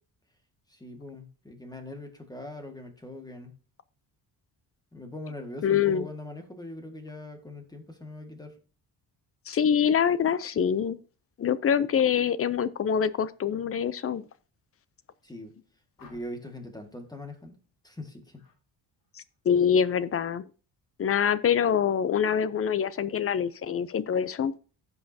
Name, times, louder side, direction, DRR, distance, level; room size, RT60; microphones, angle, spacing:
voice 1, 0.7-3.6 4.9-8.6 15.2-15.5 16.0-17.6 17.8-18.4, left 1 dB, 10° left, 1.8 m, -41 dB
voice 2, 5.6-6.1 9.5-11.0 11.4-14.2 19.5-20.4 21.0-24.5, left 8 dB, 35° left, 0.5 m, -25 dB
sound 1, 16.0-16.6 18.3-18.6 19.0-19.4, left 4 dB, 60° left, 2.5 m, -56 dB
15.5 x 5.6 x 2.7 m
cardioid pair, 125°, 38 cm